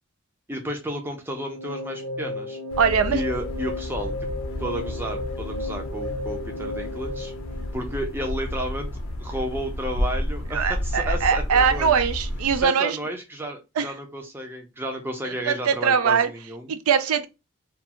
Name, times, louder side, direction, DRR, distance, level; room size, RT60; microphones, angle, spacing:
voice 1, 0.5-2.6 3.1-4.1 4.6-7.3 7.7-8.9 9.2-12.0 12.6-16.8, equal, 10° right, 0.4 m, -32 dB
sound 1, 1.3-8.5, left 2 dB, 60° right, 0.8 m, -34 dB
sound 2, 2.7-12.7, left 1 dB, 70° left, 0.5 m, -31 dB
voice 2, 2.8-3.2 10.5-13.0 13.8-13.9 15.2-16.3 16.7-17.3, right 6 dB, 85° right, 0.4 m, -22 dB
2.4 x 2.3 x 2.8 m
head